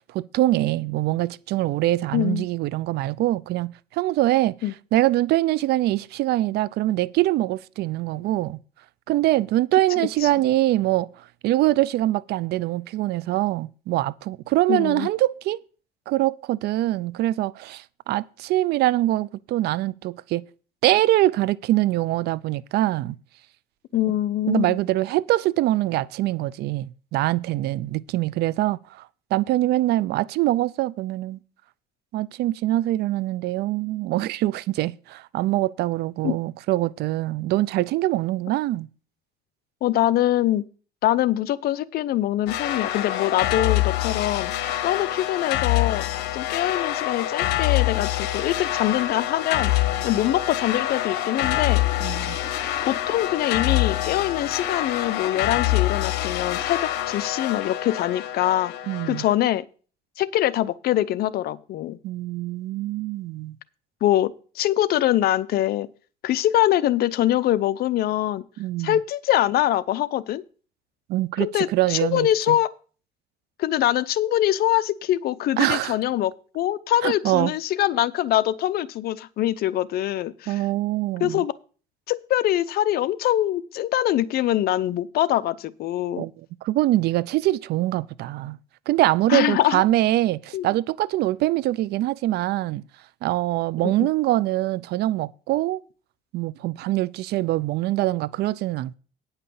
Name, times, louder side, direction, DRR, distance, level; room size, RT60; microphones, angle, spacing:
voice 1, 0.1-4.5 4.9-8.6 9.1-11.1 11.4-15.6 16.1-20.4 20.8-23.2 24.5-29.0 29.3-31.4 32.1-38.9 52.0-52.4 58.9-59.3 62.0-63.6 68.6-69.0 71.1-72.6 75.6-76.0 77.0-77.5 80.5-81.4 86.2-86.3 86.6-88.6 88.9-92.8 93.2-95.8 96.3-98.9, right 16 dB, 75° right, 0.5 m, -23 dB
voice 2, 2.1-2.5 4.6-4.7 10.2-10.3 14.7-15.1 23.9-24.8 36.2-36.4 39.8-40.6 41.0-44.5 44.8-46.0 46.3-49.7 50.0-51.8 52.8-56.8 57.1-58.7 59.0-59.6 60.2-62.0 64.0-65.9 66.2-68.4 68.8-70.4 71.4-72.7 73.6-80.6 81.2-81.5 82.1-86.3 89.3-89.8 90.5-90.7 93.8-94.1, left 13 dB, 65° left, 0.7 m, -23 dB
sound 1, 42.5-59.3, left 14 dB, 90° left, 1.0 m, -26 dB
sound 2, 51.3-56.7, left 4 dB, 10° left, 4.7 m, -44 dB
9.5 x 5.7 x 6.9 m
cardioid pair, 110°, 17 cm